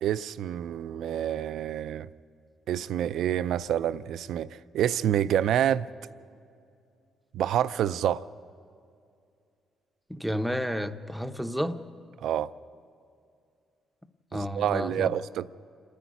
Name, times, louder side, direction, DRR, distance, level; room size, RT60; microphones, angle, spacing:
voice 1, 0.0-2.1 2.7-5.9 7.3-8.3 12.2-12.5 14.3-15.5, right 10 dB, 75° right, 0.4 m, -27 dB
voice 2, 10.1-11.8 14.3-15.1, equal, ahead, 0.8 m, -31 dB
27.5 x 10.0 x 9.4 m
cardioid pair, 90°, 0 cm